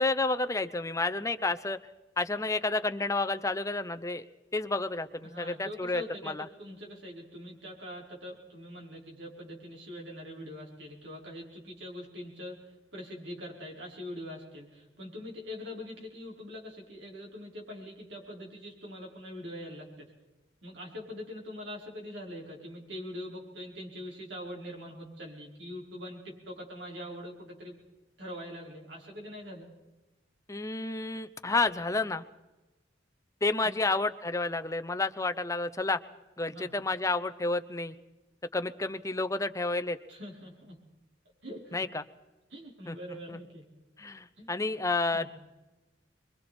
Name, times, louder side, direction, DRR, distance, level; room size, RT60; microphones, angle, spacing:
voice 1, 0.0-1.8 2.2-4.2 4.5-6.4 30.5-32.2 33.4-36.0 36.4-37.9 38.5-40.0 41.7-42.0 42.9-43.0 43.3-43.4 44.0-45.3, left 3 dB, 15° left, 9 dB, 0.7 m, -30 dB
voice 2, 5.2-20.1 20.6-27.8 28.2-29.7 33.6-33.8 36.5-36.7 40.1-40.8 41.4-41.9 42.5-43.6 44.4-44.5 45.1-45.3, left 1 dB, 70° right, -1 dB, 5.0 m, -43 dB
26.0 x 23.0 x 4.4 m, 1.1 s
head